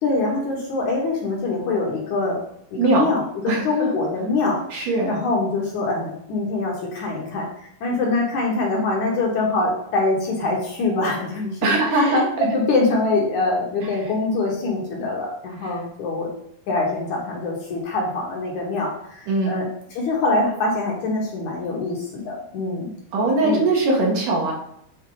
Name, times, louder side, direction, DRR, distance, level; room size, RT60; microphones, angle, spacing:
voice 1, 0.0-2.4 2.7-16.3 16.7-22.9 23.4-23.6, left 3 dB, 60° left, -3 dB, 2.3 m, -24 dB
voice 2, 2.7-3.1 3.5-3.9 4.7-5.2 11.6-12.3 16.3-16.4 19.3-19.6 23.1-24.5, right 2 dB, 65° right, -1 dB, 2.5 m, -20 dB
8.9 x 4.3 x 3.9 m, 0.74 s
omnidirectional pair, 4.5 m